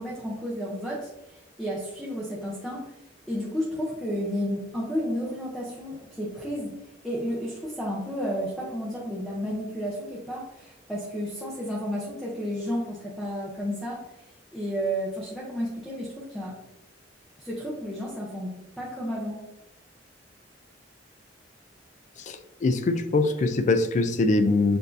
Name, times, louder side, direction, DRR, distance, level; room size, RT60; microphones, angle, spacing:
voice 1, 0.0-3.0 3.3-6.8 7.0-16.6 17.4-19.4, equal, ahead, -5 dB, 0.6 m, -32 dB
voice 2, 22.3-24.8, left 3 dB, 40° left, 9 dB, 0.3 m, -23 dB
6.7 x 2.6 x 2.5 m, 0.94 s
head